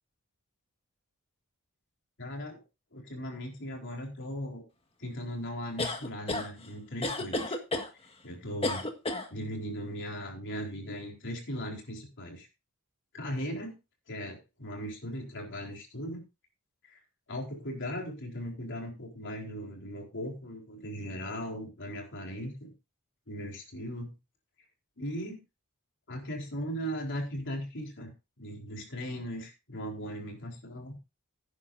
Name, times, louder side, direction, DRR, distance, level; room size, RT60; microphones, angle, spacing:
voice 1, 2.2-2.6 2.9-4.6 5.0-7.6 8.2-8.9 9.3-12.5 13.1-13.8 14.1-16.2 16.8-17.0 17.3-22.7 23.3-24.1 25.0-25.4 26.1-28.1 28.4-31.0, equal, 55° left, 1 dB, 4.3 m, -38 dB
sound 1, 5.8-6.5 7.0-7.9 8.6-9.3, left 2 dB, 25° left, 1.7 m, -31 dB
17.0 x 9.7 x 2.6 m, 0.28 s
head